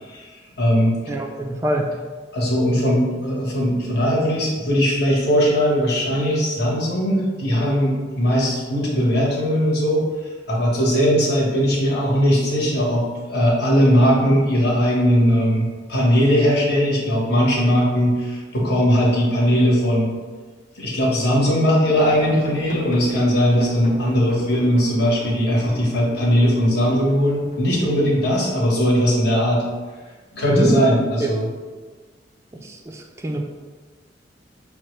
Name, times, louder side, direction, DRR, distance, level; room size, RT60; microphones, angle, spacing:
voice 1, 0.6-1.0 2.3-10.0 10.5-20.1 20.7-29.6 30.3-31.5, equal, 60° left, -5 dB, 1.2 m, -19 dB
voice 2, 1.1-2.0 30.5-30.7 31.2-31.3 32.6-33.4, right 1 dB, 15° right, 2 dB, 0.3 m, -25 dB
sound 1, 21.9-28.7, left 1 dB, 45° left, 0.9 m, -37 dB
5.8 x 2.3 x 3.1 m, 1.5 s
head